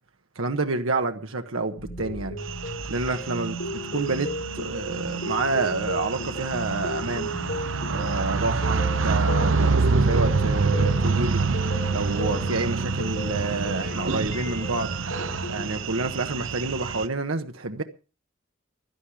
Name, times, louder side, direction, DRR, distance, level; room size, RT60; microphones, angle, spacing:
voice 1, 0.3-2.4 2.9-7.3 7.9-11.4 11.9-14.9 15.5-17.8, right 3 dB, 90° right, 1.3 m, -28 dB
sound 1, 1.8-15.6, left 1 dB, 70° left, 4.2 m, -35 dB
sound 2, 2.5-17.1, right 4 dB, 70° right, 0.8 m, -27 dB
16.0 x 12.0 x 4.9 m
head